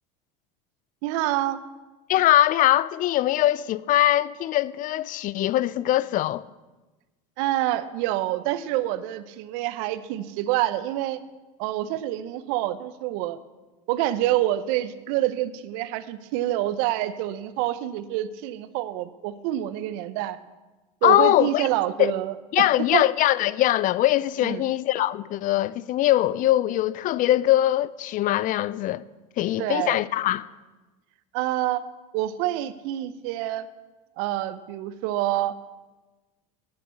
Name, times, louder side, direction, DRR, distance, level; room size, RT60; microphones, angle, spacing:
voice 1, 1.0-1.6 7.4-11.2 11.6-13.4 13.9-20.4 21.0-23.1 24.4-24.6 29.6-30.0 31.3-31.8 32.1-33.7 34.2-35.5, right 14 dB, 70° right, 0.8 m, -27 dB
voice 2, 2.1-6.4 21.0-21.7 22.0-22.1 22.5-29.0 29.4-30.5, left 14 dB, 45° left, 0.5 m, -22 dB
11.0 x 8.7 x 7.1 m
supercardioid pair, 95°, 19 cm